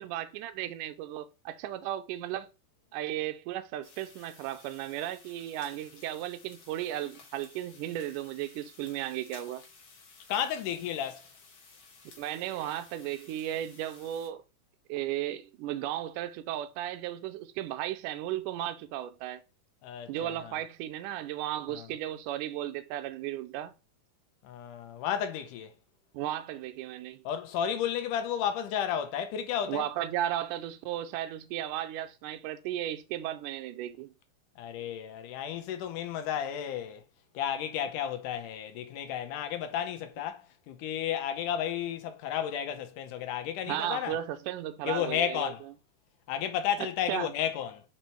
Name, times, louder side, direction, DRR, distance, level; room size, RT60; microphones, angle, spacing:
voice 1, 0.0-2.5 2.9-9.6 12.2-14.4 14.9-19.4 20.1-23.7 26.1-27.2 29.7-34.1 43.7-45.5 47.1-47.3, right 12 dB, 80° right, 2.0 m, -35 dB
sound 1, 3.8-14.3, left 4 dB, 55° left, 1.6 m, -55 dB
voice 2, 10.3-11.3 19.8-20.5 21.7-21.9 24.4-25.7 27.3-29.9 34.6-37.0 37.3-44.2 44.9-45.6 46.3-47.8, left 9 dB, 75° left, 2.1 m, -33 dB
5.4 x 4.4 x 4.4 m
omnidirectional pair, 4.0 m